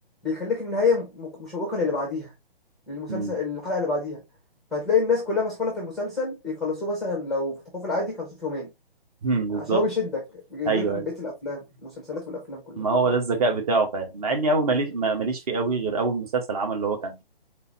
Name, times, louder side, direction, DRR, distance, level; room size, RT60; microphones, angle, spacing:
voice 1, 0.2-2.3 2.9-4.2 4.7-8.7 9.7-10.2 10.5-12.8, left 4 dB, ahead, 0.7 m, -27 dB
voice 2, 9.2-9.8 10.6-11.0 12.8-17.2, right 3 dB, 35° right, 1.4 m, -25 dB
4.3 x 3.8 x 2.9 m
figure-of-eight pair, 145°, 30 cm